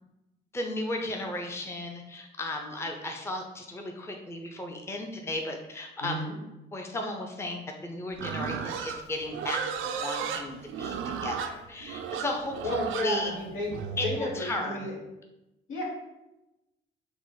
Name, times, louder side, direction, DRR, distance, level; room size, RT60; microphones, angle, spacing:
voice 1, 0.5-6.3 6.7-13.3 14.0-14.9, left 1 dB, 15° left, 2 dB, 0.5 m, -35 dB
voice 2, 6.0-6.3 12.6-14.9 15.7-15.8, left 1 dB, 85° left, -3 dB, 1.4 m, -32 dB
Livestock farm animals working animals, 8.2-14.2, right 7 dB, 80° right, 0.4 m, -34 dB
4.8 x 2.1 x 4.0 m, 0.96 s
cardioid pair, 90°, 20 cm